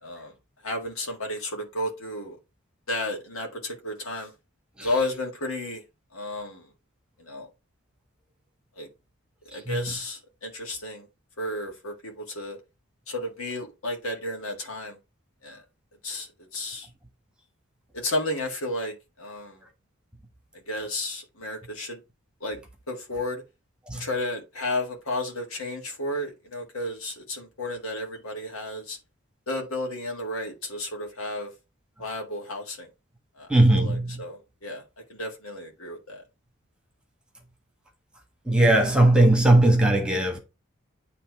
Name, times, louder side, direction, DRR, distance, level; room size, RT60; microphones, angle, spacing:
voice 1, 0.0-0.3 0.6-2.4 2.9-4.3 4.8-5.8 6.1-6.7 7.2-7.5 8.7-8.9 9.4-11.1 11.4-12.6 13.1-15.0 15.4-15.6 16.0-16.9 17.9-19.6 20.7-22.0 22.4-22.6 22.9-23.4 23.9-29.0 29.5-31.5 32.0-32.9 33.4-34.8 35.1-36.2, left 1 dB, 80° left, 1.8 m, -32 dB
voice 2, 9.5-9.9 23.9-24.1 33.5-34.2 38.4-40.4, right 1 dB, 5° right, 1.3 m, -19 dB
8.7 x 3.4 x 4.7 m
head